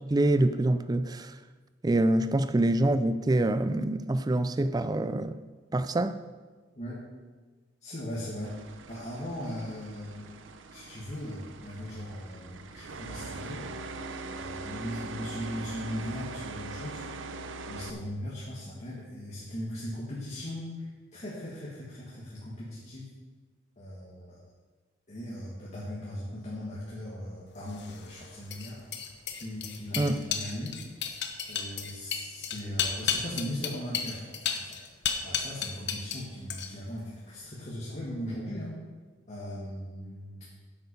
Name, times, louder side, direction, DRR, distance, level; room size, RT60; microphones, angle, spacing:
voice 1, 0.1-1.4 1.8-5.4 5.7-6.2 30.0-30.2, right 1 dB, 20° right, 0.4 m, -25 dB
voice 2, 7.8-10.3 10.7-13.7 14.3-17.0 17.7-23.1 23.8-24.5 25.1-28.8 29.4-30.8 31.0-31.2 31.5-34.8 35.2-38.8 39.3-40.5, equal, 40° left, 1.9 m, -38 dB
sound 1, 8.4-17.9, right 3 dB, 80° right, 0.7 m, -42 dB
sound 2, 27.7-36.2 36.5-37.0, left 7 dB, 60° left, 0.9 m, -33 dB
8.7 x 8.1 x 5.4 m
head